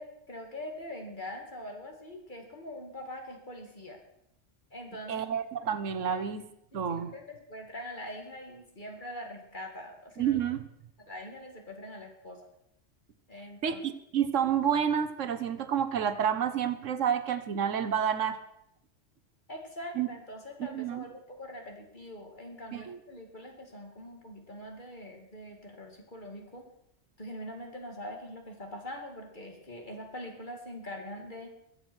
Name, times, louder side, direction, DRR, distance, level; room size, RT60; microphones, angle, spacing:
voice 1, 0.0-4.0 4.7-5.2 6.1-6.2 6.7-10.4 11.1-12.4 13.3-13.8 19.5-26.6 27.2-31.5, left 1 dB, 40° left, 2 dB, 2.6 m, -43 dB
voice 2, 5.1-6.5 6.7-7.1 10.2-10.6 13.6-18.4 20.0-20.1 20.7-21.0 22.7-23.0, right 8 dB, 85° right, 12 dB, 1.4 m, -29 dB
21.5 x 7.8 x 6.3 m, 0.77 s
omnidirectional pair, 1.3 m